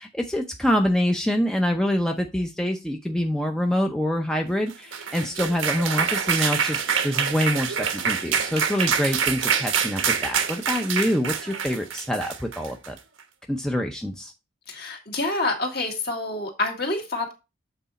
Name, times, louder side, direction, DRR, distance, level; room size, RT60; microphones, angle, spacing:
voice 1, 0.0-13.0 13.5-14.3, equal, 5° left, 2 dB, 0.6 m, -25 dB
sound 1, 4.7-13.0, right 7 dB, 85° right, 1.1 m, -26 dB
voice 2, 14.7-17.3, left 2 dB, 50° left, 2 dB, 1.9 m, -27 dB
7.9 x 4.1 x 4.0 m, 0.26 s
head